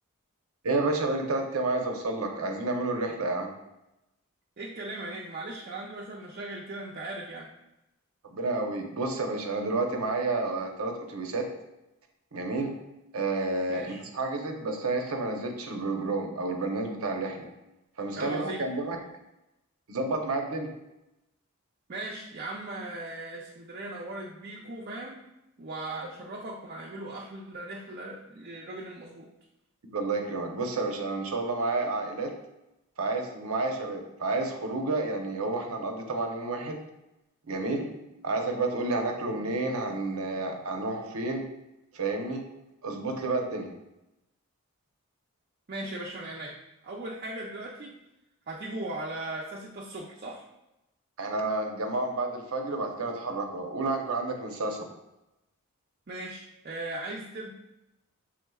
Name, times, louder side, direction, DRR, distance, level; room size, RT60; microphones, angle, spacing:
voice 1, 0.6-3.5 8.2-11.5 12.3-12.7 13.1-17.5 18.0-19.0 19.9-20.7 29.9-32.3 33.0-36.8 37.5-37.9 38.2-41.5 41.9-42.4 42.8-43.7 51.2-54.8, right 2 dB, 85° right, 3 dB, 0.8 m, -30 dB
voice 2, 4.6-7.5 13.7-14.0 18.1-18.6 21.9-25.2 25.6-29.3 45.7-46.6 46.8-48.0 48.5-50.4 56.1-57.5, right 2 dB, 45° right, -3 dB, 0.5 m, -38 dB
6.3 x 3.6 x 2.3 m, 0.92 s
head